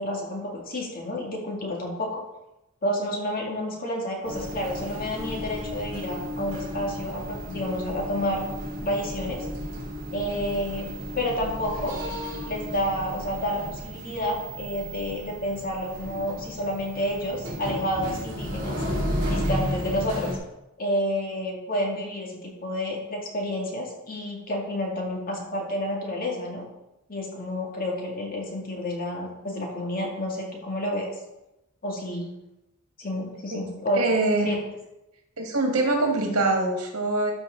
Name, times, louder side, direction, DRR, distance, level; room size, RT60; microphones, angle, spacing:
voice 1, 0.0-2.2 2.8-8.4 8.8-9.5 10.1-10.9 11.1-12.0 12.4-18.8 19.3-20.3 20.8-26.6 27.1-31.1 31.8-32.3 33.0-34.0 34.4-34.6, left 1 dB, 40° left, -2 dB, 2.3 m, -30 dB
sound 1, 4.2-20.4, equal, 55° right, 3.0 m, -33 dB
voice 2, 33.9-34.5 35.4-37.3, right 2 dB, 85° right, 2 dB, 1.7 m, -24 dB
13.0 x 5.2 x 3.8 m, 0.93 s
head